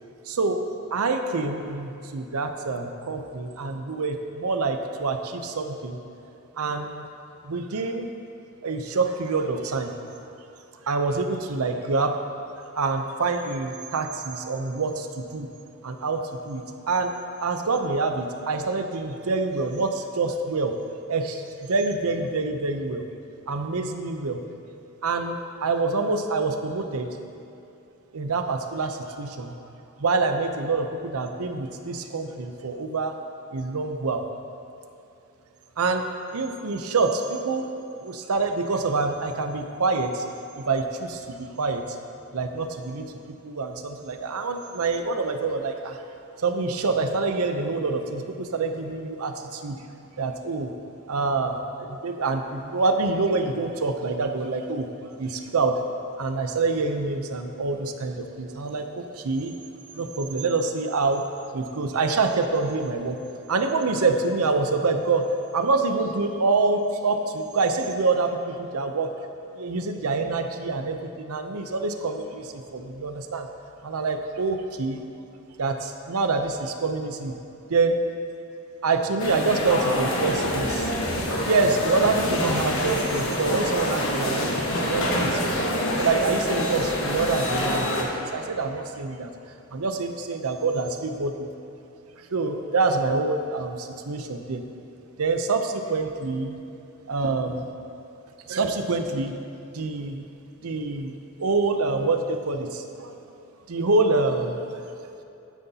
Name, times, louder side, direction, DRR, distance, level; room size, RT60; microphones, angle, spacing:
voice 1, 0.3-0.6 0.9-6.0 6.6-7.0 7.4-8.1 8.6-9.9 10.8-12.2 12.7-15.5 15.8-17.1 17.4-20.8 21.1-23.0 23.5-24.4 25.0-27.1 28.1-29.5 30.0-33.2 33.5-34.2 35.8-36.0 36.3-37.7 38.0-40.2 40.6-42.0 42.3-46.0 46.4-49.8 50.2-50.7 51.1-55.8 56.2-59.5 59.9-61.3 61.5-63.2 63.5-69.1 69.5-73.5 73.8-75.1 75.6-77.3 77.7-78.0 78.8-80.9 81.4-85.6 86.0-89.3 89.7-91.5 92.2-94.6 95.2-96.6 97.1-97.7 98.5-99.4 99.7-100.2 100.6-103.2 103.7-104.7, right 3 dB, 90° right, 6 dB, 0.7 m, -26 dB
sound 1, 79.2-88.0, left 1 dB, 70° left, 1.3 m, -26 dB
12.0 x 9.3 x 2.9 m, 2.8 s
head